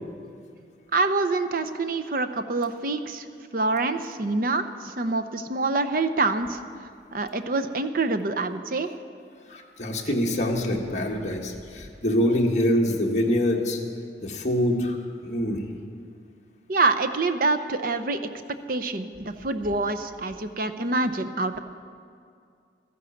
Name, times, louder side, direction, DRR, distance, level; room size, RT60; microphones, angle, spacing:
voice 1, 0.9-3.3 3.5-6.6 7.1-8.9 16.7-18.2 18.7-21.6, right 3 dB, 50° right, 9 dB, 0.7 m, -26 dB
voice 2, 9.5-13.8 14.2-15.0 15.2-15.6, equal, 40° left, -1 dB, 1.6 m, -25 dB
14.0 x 11.0 x 7.2 m, 2.3 s
head